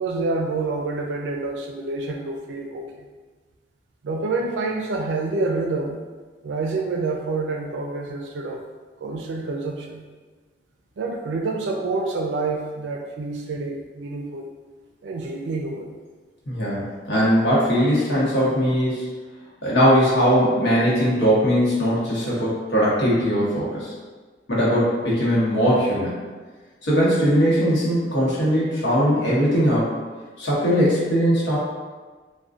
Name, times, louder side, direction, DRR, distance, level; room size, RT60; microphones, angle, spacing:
voice 1, 0.0-3.0 4.0-6.0 6.4-8.6 9.0-10.0 11.0-14.5 15.0-16.0, right 3 dB, 90° right, 2 dB, 0.4 m, -27 dB
voice 2, 16.5-19.1 19.6-23.9 24.5-26.2 26.8-29.9 30.4-31.6, equal, 85° left, -7 dB, 0.9 m, -20 dB
2.4 x 2.2 x 2.4 m, 1.4 s
head